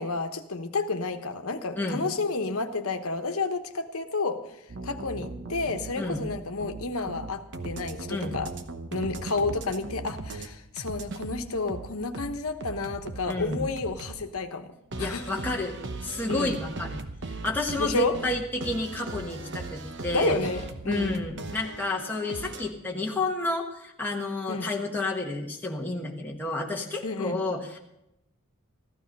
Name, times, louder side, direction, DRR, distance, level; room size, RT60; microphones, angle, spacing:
voice 1, 0.0-4.4 4.8-8.5 8.9-15.3 16.3-16.6 17.8-18.2 20.1-21.1 24.5-24.7 27.0-27.4, left 3 dB, 75° left, 7 dB, 1.1 m, -30 dB
sound 1, 4.7-10.5 10.8-14.2 14.9-22.7, right 3 dB, 55° right, 1.0 m, -38 dB
voice 2, 13.3-13.6 15.0-15.8 16.0-17.0 17.4-20.4 20.8-27.8, left 2 dB, 10° left, -1 dB, 1.3 m, -30 dB
14.5 x 12.0 x 5.3 m, 0.87 s
head